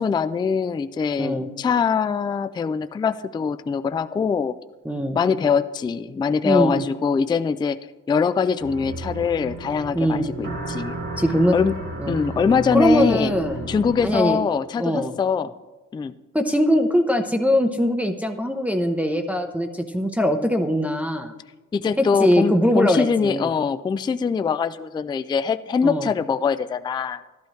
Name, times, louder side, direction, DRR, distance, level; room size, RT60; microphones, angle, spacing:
voice 1, 0.0-4.6 5.2-7.8 8.1-11.0 11.5-11.8 12.1-13.3 13.7-15.5 15.9-16.1 21.7-27.2, left 6 dB, 15° left, 12 dB, 0.3 m, -23 dB
voice 2, 4.8-5.2 6.4-6.8 9.9-10.3 11.2-11.6 12.0-12.1 12.7-13.7 14.0-14.4 14.8-15.1 16.3-21.3 22.0-23.5 25.8-26.1, equal, 5° right, 3 dB, 0.7 m, -21 dB
sound 1, 8.6-14.1, right 2 dB, 90° right, 2.8 m, -33 dB
12.5 x 11.5 x 3.2 m, 1.2 s
cardioid pair, 90°, 30 cm